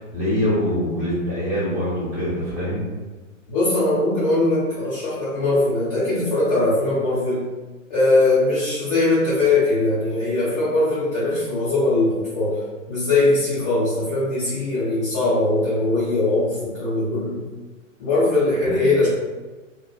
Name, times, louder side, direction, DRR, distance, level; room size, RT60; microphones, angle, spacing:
voice 1, 0.0-2.8, left 1 dB, 30° right, -11 dB, 1.1 m, -24 dB
voice 2, 3.5-7.4 7.9-12.6 12.9-17.4 18.0-19.1, left 2 dB, 15° left, -13 dB, 0.4 m, -20 dB
2.7 x 2.1 x 2.2 m, 1.3 s
figure-of-eight pair, 115°, 39 cm